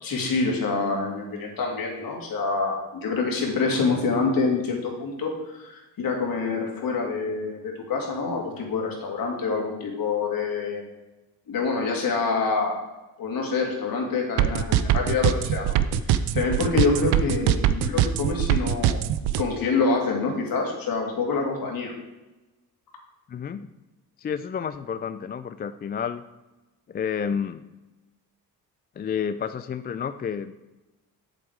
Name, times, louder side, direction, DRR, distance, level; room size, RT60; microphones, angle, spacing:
voice 1, 0.0-10.8 11.5-12.8 13.2-15.8 16.1-19.0 19.4-21.9, left 4 dB, 60° left, 0 dB, 2.6 m, -26 dB
sound 1, 14.4-19.4, right 11 dB, 80° right, 0.6 m, -22 dB
voice 2, 23.3-23.7 24.2-26.2 26.9-27.7 29.0-30.7, left 7 dB, 25° left, 11 dB, 0.3 m, -30 dB
7.8 x 7.4 x 4.8 m, 1.1 s
cardioid pair, 90°, 39 cm